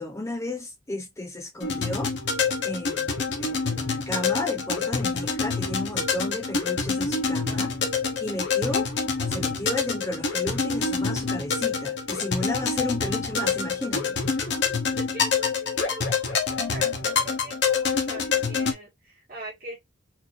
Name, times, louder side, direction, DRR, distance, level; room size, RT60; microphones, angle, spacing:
voice 1, 0.0-2.1 2.6-7.7 8.2-8.9 9.3-14.2, left 1 dB, 15° left, 0.6 m, -33 dB
sound 1, 1.6-18.7, left 5 dB, 55° left, 0.9 m, -26 dB
voice 2, 7.5-7.9 14.5-14.6 15.0-16.4 16.7-19.8, right 2 dB, 45° right, 2.1 m, -42 dB
4.5 x 2.8 x 2.5 m
head